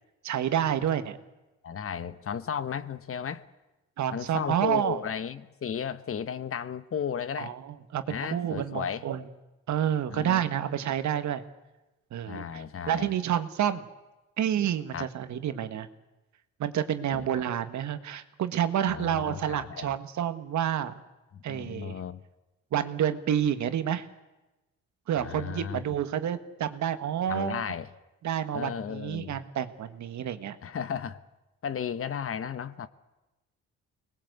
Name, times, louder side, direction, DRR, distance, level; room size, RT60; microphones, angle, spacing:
voice 1, 0.2-1.2 4.0-5.0 7.4-9.3 9.7-11.4 12.1-13.9 14.4-15.9 16.6-20.9 21.4-22.0 22.7-24.1 25.1-27.6 28.2-30.6, right 10 dB, 70° right, 10 dB, 1.6 m, -29 dB
voice 2, 1.6-3.4 4.1-7.5 8.1-9.0 10.1-10.5 12.3-13.1 14.9-15.1 17.1-17.3 18.9-19.9 21.3-22.2 25.2-25.8 27.3-27.9 28.5-29.4 30.6-31.2 31.6-32.9, left 7 dB, 45° left, 14 dB, 1.2 m, -34 dB
25.0 x 20.0 x 8.1 m, 1.0 s
cardioid pair, 90°, 30 cm